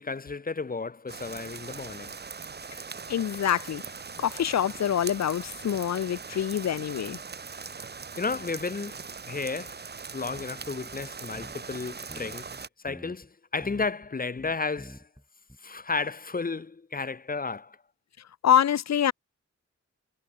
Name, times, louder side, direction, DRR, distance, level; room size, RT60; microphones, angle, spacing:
voice 1, 0.0-2.2 8.2-9.8 10.1-12.5 12.8-15.1 15.6-17.8, left 4 dB, 30° left, 0.7 m, -33 dB
sound 1, 1.1-12.7, right 5 dB, 35° right, 0.7 m, -41 dB
voice 2, 3.1-3.8 4.2-7.2 18.4-19.1, left 9 dB, 70° left, 0.5 m, -25 dB
sound 2, 10.3-11.8 12.1-13.3 13.6-14.1 14.4-15.2 15.5-15.6, equal, 5° right, 3.0 m, -47 dB
wide cardioid pair, 80°, 29 cm